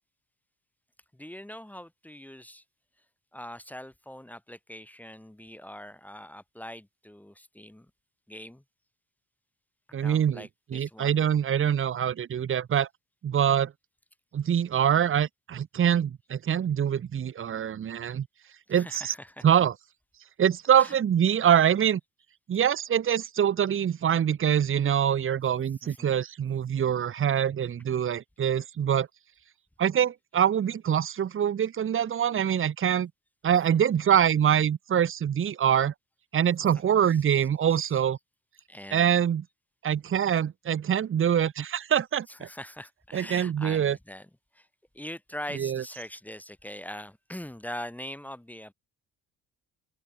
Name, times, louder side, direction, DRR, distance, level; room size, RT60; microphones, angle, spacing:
voice 1, 1.1-2.6 3.3-7.9 8.3-8.6 10.0-11.2 18.7-19.4 20.7-21.0 25.8-26.2 37.1-38.0 38.7-39.1 42.3-44.7 44.9-48.7, equal, 5° left, 1.4 m, -42 dB
voice 2, 9.9-12.9 13.2-13.7 14.3-18.3 18.7-19.1 19.4-19.7 20.4-22.0 22.5-29.1 29.8-33.1 33.4-35.9 36.3-38.2 38.9-39.4 39.8-42.5 43.1-44.0 45.6-45.8, right 9 dB, 45° right, 1.0 m, -24 dB
open air
cardioid pair, 90°, 30 cm